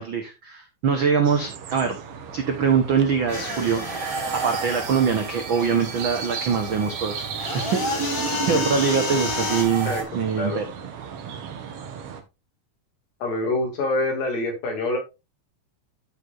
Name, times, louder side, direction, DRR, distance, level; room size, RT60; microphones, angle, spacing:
voice 1, 0.0-2.0 2.3-7.3 7.5-7.9 8.5-10.7, right 6 dB, 85° right, 5 dB, 1.1 m, -23 dB
sound 1, 1.2-12.2, right 7 dB, 60° right, 1.6 m, -37 dB
sound 2, 3.3-5.3 7.4-9.6, left 3 dB, 40° left, 2.5 m, -30 dB
sound 3, 3.3-10.0, right 4 dB, 40° right, 1.8 m, -33 dB
voice 2, 13.2-15.0, left 2 dB, 90° left, 3 dB, 4.1 m, -25 dB
12.5 x 5.7 x 2.5 m, 0.25 s
omnidirectional pair, 3.9 m